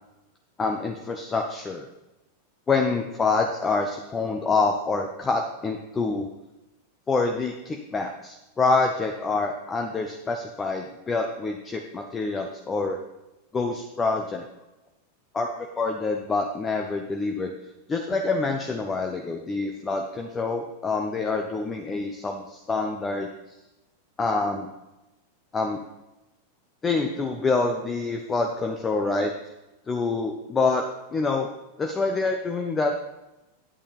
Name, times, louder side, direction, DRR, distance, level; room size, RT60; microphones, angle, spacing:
voice 1, 0.6-1.9 2.7-6.3 7.1-13.0 13.5-14.5 15.3-17.5 17.9-23.3 24.2-24.7 25.5-25.8 26.8-29.3 29.9-30.8 31.1-31.5 31.8-32.9, left 3 dB, 15° left, 3 dB, 0.8 m, -26 dB
9.7 x 8.7 x 3.5 m, 0.97 s
figure-of-eight pair, 90°, 0 cm